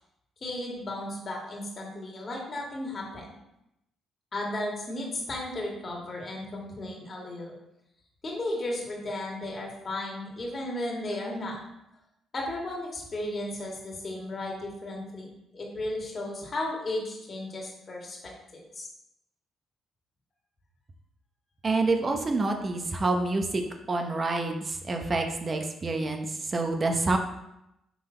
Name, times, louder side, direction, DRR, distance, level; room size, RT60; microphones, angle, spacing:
voice 1, 0.4-3.3 4.3-7.5 8.2-11.6 12.3-18.9, left 1 dB, 35° left, -2 dB, 1.9 m, -35 dB
voice 2, 21.6-23.6 23.9-26.3 26.5-27.2, right 3 dB, 35° right, 4 dB, 0.9 m, -27 dB
6.0 x 3.8 x 4.4 m, 0.86 s
cardioid pair, 90°, 0 cm